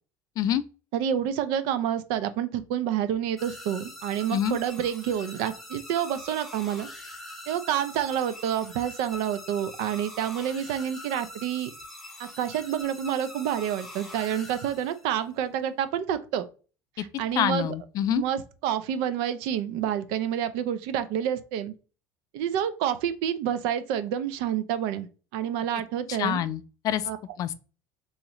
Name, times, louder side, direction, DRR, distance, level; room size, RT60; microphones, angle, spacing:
voice 1, 0.9-6.9 7.5-11.7 12.2-16.5 17.0-17.7 18.1-21.7 22.3-25.1 25.3-26.4 27.1-27.2, right 9 dB, 70° right, 0.5 m, -28 dB
sound 1, 3.4-15.2, left 1 dB, ahead, 0.9 m, -43 dB
voice 2, 17.4-18.2 26.1-27.1 27.4-27.5, left 10 dB, 45° left, 0.4 m, -26 dB
3.6 x 3.1 x 3.0 m
cardioid pair, 130°, 9 cm